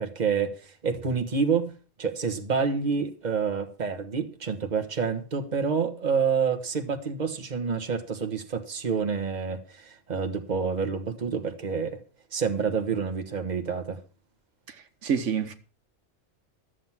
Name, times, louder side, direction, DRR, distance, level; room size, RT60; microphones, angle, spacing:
voice 1, 0.0-1.7 2.0-12.0 12.3-14.0, right 5 dB, 40° right, 1.4 m, -28 dB
voice 2, 14.7-15.5, right 7 dB, 90° right, 1.4 m, -28 dB
13.0 x 7.7 x 5.8 m
omnidirectional pair, 1.2 m